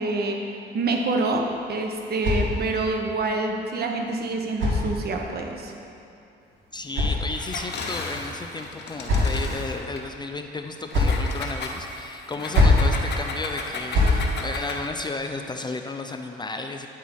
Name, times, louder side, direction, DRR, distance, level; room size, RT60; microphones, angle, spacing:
voice 1, 0.0-5.7, right 2 dB, 55° right, 2 dB, 0.9 m, -27 dB
sound 1, 1.3-3.0 4.0-5.4 6.4-7.7 8.6-9.6 10.5-11.3 12.3-12.9 13.7-14.2, left 2 dB, 70° right, 1.8 m, -25 dB
voice 2, 6.7-16.9, left 3 dB, 20° left, 5 dB, 0.4 m, -33 dB
Engine, 7.3-10.1 10.9-15.0, left 3 dB, 60° left, 0.8 m, -35 dB
9.2 x 4.6 x 4.2 m, 2.7 s
cardioid pair, 90°, 20 cm